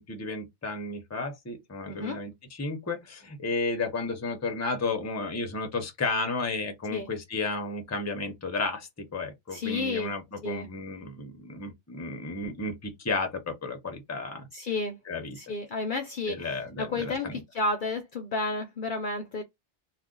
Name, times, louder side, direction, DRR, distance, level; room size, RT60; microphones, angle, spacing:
voice 1, 0.0-14.5 15.0-15.4 16.3-17.4, left 3 dB, 20° left, 0.6 m, -33 dB
voice 2, 1.9-2.2 6.9-7.1 9.5-10.1 10.4-10.7 14.5-15.0 15.3-19.4, left 3 dB, 55° left, 0.6 m, -31 dB
2.4 x 2.3 x 3.7 m
omnidirectional pair, 1.1 m